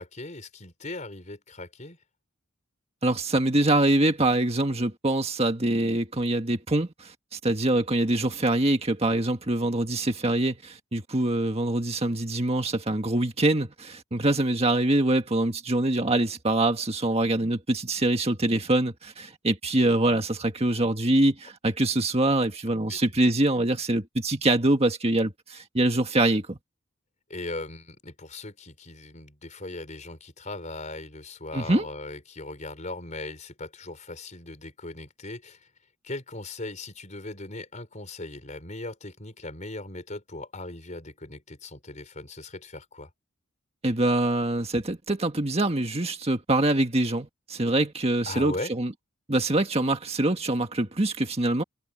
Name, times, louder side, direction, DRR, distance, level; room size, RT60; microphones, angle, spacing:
voice 1, 0.0-2.0 22.9-23.0 27.3-35.7 36.0-43.1 48.3-48.7, left 2 dB, 35° left, 4.5 m, -38 dB
voice 2, 3.0-26.6 31.5-31.9 43.8-48.9 49.3-51.6, right 1 dB, 30° right, 1.7 m, -24 dB
head